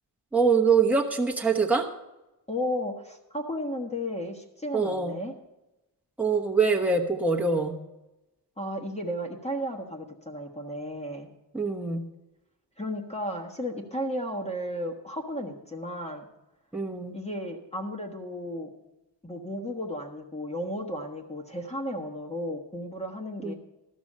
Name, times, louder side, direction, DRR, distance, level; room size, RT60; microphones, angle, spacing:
voice 1, 0.3-1.9 4.7-5.2 6.2-7.7 11.5-12.0 16.7-17.2 23.4-23.5, right 4 dB, 5° right, -1 dB, 1.2 m, -24 dB
voice 2, 2.5-5.3 8.6-11.3 12.8-16.3 17.1-18.7 19.2-23.5, equal, 15° left, 2 dB, 1.3 m, -34 dB
13.0 x 6.1 x 7.5 m, 0.98 s
wide cardioid pair, 110°, 43 cm